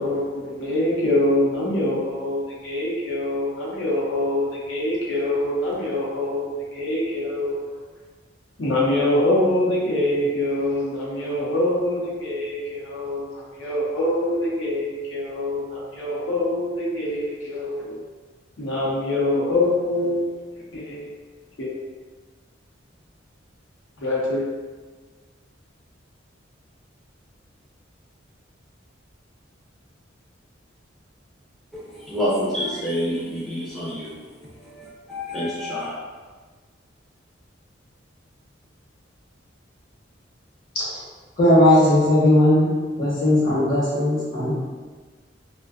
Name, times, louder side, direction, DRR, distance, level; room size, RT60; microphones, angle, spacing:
voice 1, 0.0-7.6 8.6-18.0 18.6-20.2 20.7-21.1 21.6-21.8 24.0-24.4, left 1 dB, 80° left, -6 dB, 0.7 m, -24 dB
voice 2, 31.7-34.1 34.6-35.9, equal, ahead, -9 dB, 0.4 m, -28 dB
voice 3, 41.4-42.7 43.0-44.5, left 1 dB, 50° left, -8 dB, 0.9 m, -17 dB
2.5 x 2.1 x 2.4 m, 1.4 s
head